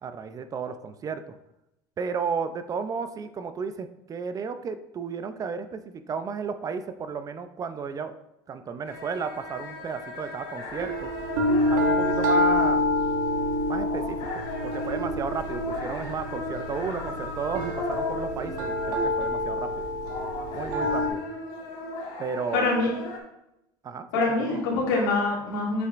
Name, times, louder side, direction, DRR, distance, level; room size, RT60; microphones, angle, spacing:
voice 1, 0.0-1.3 2.0-8.2 8.5-11.1 11.7-12.9 13.7-19.9 20.5-21.2 22.2-22.7 23.8-24.6, right 5 dB, 35° right, 10 dB, 0.5 m, -33 dB
sound 1, 8.8-19.5 19.8-23.2, left 2 dB, 65° left, 1.5 m, -36 dB
sound 2, 10.7-21.1, left 1 dB, 80° right, 1.2 m, -27 dB
voice 2, 22.5-22.9 24.1-25.9, left 3 dB, 90° left, -5 dB, 2.5 m, -24 dB
7.5 x 5.8 x 2.5 m, 0.87 s
supercardioid pair, 100°, 10 cm